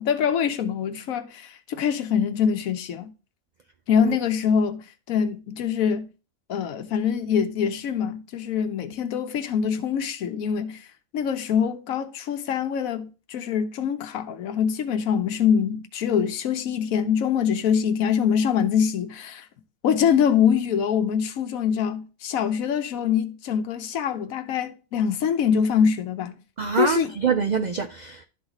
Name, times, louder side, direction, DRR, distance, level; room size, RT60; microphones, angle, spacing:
voice 1, 0.0-3.1 3.9-4.8 5.1-6.1 6.5-10.8 11.1-19.4 19.8-26.4 26.8-27.1, left 7 dB, 85° left, 1.2 m, -24 dB
voice 2, 26.6-28.2, right 6 dB, 75° right, 0.4 m, -25 dB
12.0 x 4.0 x 2.9 m
omnidirectional pair, 1.4 m